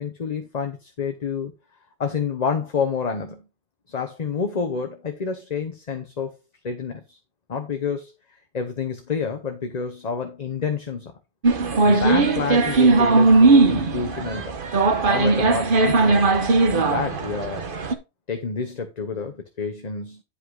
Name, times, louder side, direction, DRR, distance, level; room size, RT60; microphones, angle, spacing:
voice 1, 0.0-1.5 2.0-3.5 3.9-6.4 6.6-7.2 7.5-8.1 8.5-11.1 11.8-14.6 15.0-16.3 16.7-17.6 18.3-20.2, left 5 dB, 40° left, 1.0 m, -29 dB
sound 1, 11.4-18.0, right 3 dB, 55° right, 1.2 m, -18 dB
9.9 x 5.5 x 3.9 m
omnidirectional pair, 1.1 m